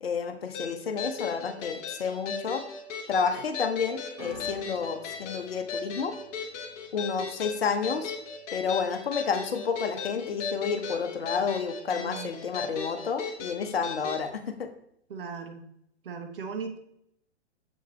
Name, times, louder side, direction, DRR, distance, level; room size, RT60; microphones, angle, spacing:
voice 1, 0.0-2.6 3.1-6.1 6.9-8.1 8.5-14.7, left 6 dB, 60° left, 8 dB, 0.9 m, -30 dB
sound 1, 0.5-14.2, left 5 dB, 25° left, 1.2 m, -37 dB
sound 2, 4.2-10.5 10.7-11.4 12.1-12.2, left 2 dB, 35° right, 2.7 m, -51 dB
voice 2, 11.9-12.4 15.1-15.7 16.0-16.8, right 5 dB, 50° right, 5 dB, 1.2 m, -38 dB
7.2 x 5.8 x 3.2 m, 0.73 s
figure-of-eight pair, 125°, 34 cm